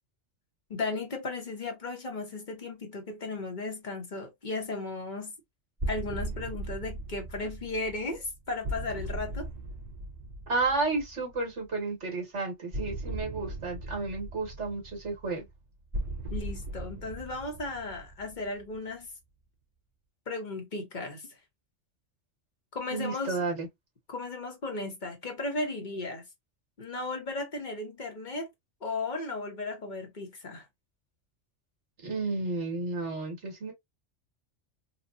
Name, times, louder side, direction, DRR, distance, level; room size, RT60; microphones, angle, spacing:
voice 1, 0.7-5.3 5.9-9.5 16.3-19.1 20.3-21.3 22.7-23.4 24.1-26.2 26.8-28.5 28.8-30.7, left 3 dB, 40° left, 1.2 m, -35 dB
sound 1, 5.8-11.5 12.7-19.0, right 1 dB, 35° right, 1.7 m, -38 dB
voice 2, 10.5-15.5 22.9-23.7 32.0-33.7, right 3 dB, 65° right, 2.1 m, -32 dB
4.1 x 2.4 x 2.6 m
omnidirectional pair, 1.3 m